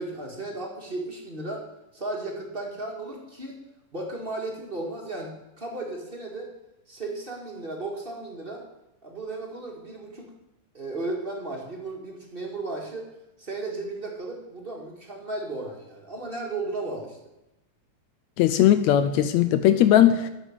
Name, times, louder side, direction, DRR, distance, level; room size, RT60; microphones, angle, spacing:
voice 1, 0.0-1.6 1.9-3.6 3.9-6.5 6.9-8.6 9.0-10.3 10.7-13.1 13.4-17.2, right 2 dB, 25° right, 0 dB, 1.4 m, -35 dB
voice 2, 18.4-20.3, left 11 dB, 80° left, 11 dB, 1.7 m, -19 dB
10.0 x 6.7 x 8.9 m, 0.93 s
omnidirectional pair, 3.7 m